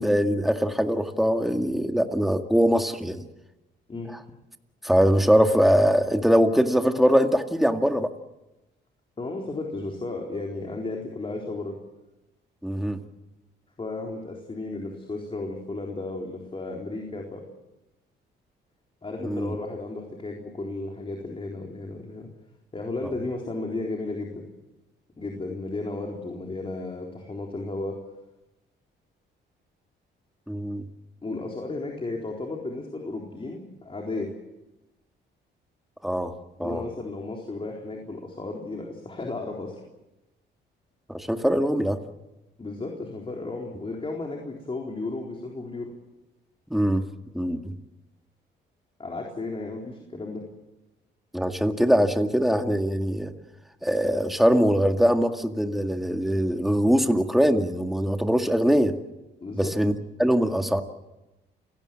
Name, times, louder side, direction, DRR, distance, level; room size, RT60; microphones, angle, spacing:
voice 1, 0.0-3.2 4.8-8.1 12.6-13.0 19.2-19.5 23.0-23.1 30.5-30.8 36.0-36.3 36.6-36.8 41.1-42.0 46.7-47.0 47.3-47.7 51.3-53.3 53.8-58.9 59.5-60.8, equal, ahead, 5 dB, 2.0 m, -22 dB
voice 2, 9.2-11.8 13.8-17.4 19.0-22.3 22.7-24.5 25.2-28.0 31.2-34.3 36.6-39.8 42.6-45.9 49.0-50.4 59.4-59.8, left 2 dB, 30° left, 0 dB, 4.0 m, -34 dB
29.0 x 17.5 x 7.6 m, 0.99 s
cardioid pair, 90°, 20 cm